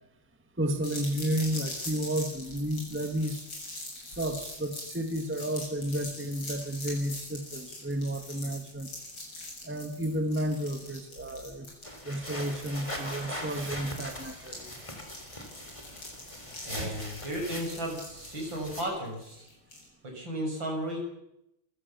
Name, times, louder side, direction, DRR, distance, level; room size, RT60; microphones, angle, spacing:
voice 1, 0.6-3.4 4.2-8.9 9.6-11.7 12.0-14.7, right 1 dB, 5° right, 7 dB, 1.7 m, -32 dB
sound 1, 0.8-19.9, left 2 dB, 85° left, 7.9 m, -43 dB
sound 2, 11.8-18.8, left 1 dB, 15° left, 3.9 m, -41 dB
voice 2, 16.7-19.5 20.0-21.0, right 1 dB, 70° right, 1 dB, 7.3 m, -34 dB
25.5 x 16.0 x 7.1 m, 0.86 s
omnidirectional pair, 2.2 m